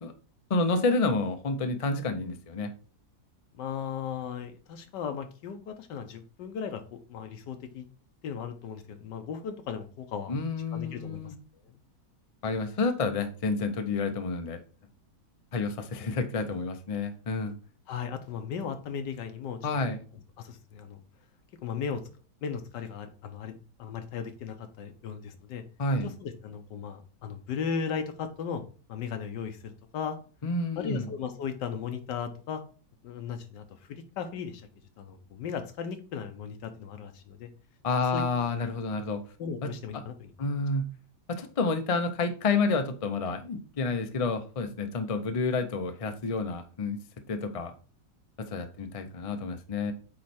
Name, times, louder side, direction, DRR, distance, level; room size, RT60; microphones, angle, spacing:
voice 1, 0.5-2.7 10.3-11.3 12.4-14.6 15.5-17.5 19.6-20.0 25.8-26.1 30.4-31.1 37.8-39.2 39.6-39.7 40.4-40.9 41.4-47.0 47.3-47.7 48.5-49.9, left 3 dB, 50° left, 7 dB, 0.4 m, -29 dB
voice 2, 3.5-7.9 8.2-10.3 10.7-11.3 17.9-19.8 20.4-21.0 21.6-22.0 22.4-25.6 26.0-28.6 28.9-30.2 30.8-32.6 33.0-34.6 35.0-37.5 38.1-38.4 39.4-40.3, left 6 dB, 85° left, 8 dB, 1.5 m, -36 dB
8.5 x 3.2 x 4.3 m, 0.38 s
omnidirectional pair, 1.8 m